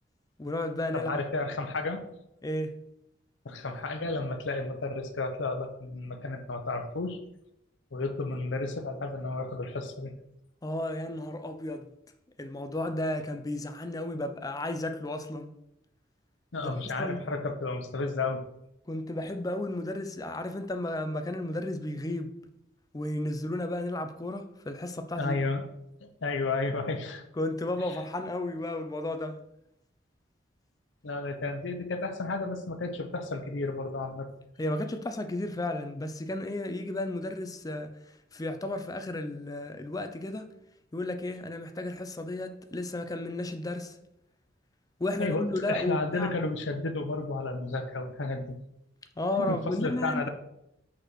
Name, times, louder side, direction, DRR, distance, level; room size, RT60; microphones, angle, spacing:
voice 1, 0.4-1.2 2.4-2.7 10.6-11.9 12.4-15.5 16.6-16.7 17.0-17.2 18.9-22.3 22.9-25.3 27.4-29.4 34.6-37.9 38.3-40.6 40.9-44.0 45.0-46.3 49.2-50.3, left 1 dB, 20° left, 0.5 m, -33 dB
voice 2, 0.9-2.0 3.4-7.2 7.9-10.1 16.5-18.4 25.2-25.7 26.0-27.2 27.8-28.0 31.0-34.3 45.2-48.6 49.4-50.3, left 3 dB, 80° left, 0.8 m, -32 dB
5.3 x 4.2 x 6.1 m
head